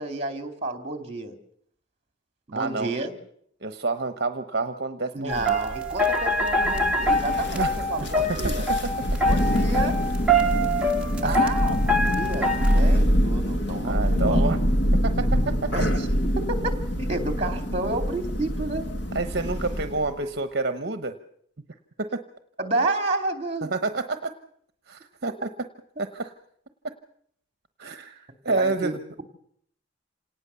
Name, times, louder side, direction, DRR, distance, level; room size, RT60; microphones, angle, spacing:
voice 1, 0.0-1.3 2.5-3.1 5.1-8.6 9.2-10.0 11.2-14.4 15.7-16.1 16.4-18.9 22.6-23.7 28.5-29.0, right 2 dB, 30° right, 7 dB, 2.6 m, -30 dB
voice 2, 2.5-2.9 3.6-5.6 7.5-7.8 11.2-11.5 13.8-14.6 15.0-15.1 15.5-15.7 19.1-21.1 22.0-22.1 23.6-24.3 24.9-25.5 26.0-26.3 27.8-29.2, right 3 dB, 55° right, 9 dB, 1.0 m, -29 dB
sound 1, 5.3-12.8, equal, 5° right, 1.6 m, -25 dB
Thunder, 6.5-20.1, equal, 60° left, 1.8 m, -25 dB
27.0 x 18.5 x 6.9 m, 0.67 s
head